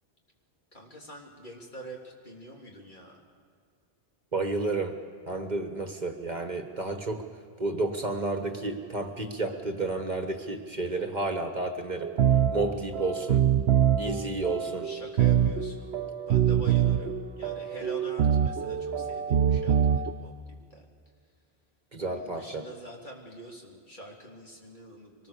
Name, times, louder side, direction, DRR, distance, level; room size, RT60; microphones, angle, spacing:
voice 1, 0.7-3.2 10.9-11.8 14.8-16.0 16.3-20.8 22.0-25.3, right 1 dB, 50° left, -1 dB, 3.4 m, -45 dB
voice 2, 4.3-5.0 5.3-7.3 7.6-12.1 12.5-13.4 14.0-14.9 21.9-22.6, right 2 dB, 45° right, 5 dB, 1.6 m, -31 dB
sound 1, 12.0-20.1, right 9 dB, 85° right, 1.0 m, -25 dB
24.0 x 20.0 x 6.8 m, 2.1 s
omnidirectional pair, 1.0 m